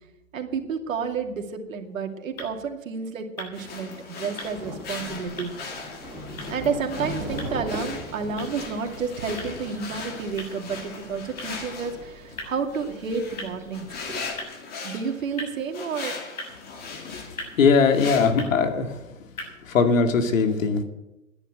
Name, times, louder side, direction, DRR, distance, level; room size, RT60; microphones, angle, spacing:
voice 1, 0.3-5.5 6.5-13.9 14.8-16.2, right 5 dB, 75° right, 4 dB, 2.6 m, -30 dB
sound 1, 1.7-19.8, left 2 dB, 85° left, 7.1 m, -45 dB
sound 2, 3.5-18.3, left 4 dB, 25° left, 2.3 m, -39 dB
Thunder, 4.4-14.4, equal, 5° right, 3.2 m, -39 dB
voice 2, 17.6-19.0 19.7-20.8, left 5 dB, 70° left, 6 dB, 2.4 m, -20 dB
10.5 x 10.5 x 9.1 m, 0.97 s
hypercardioid pair, 135°, 41 cm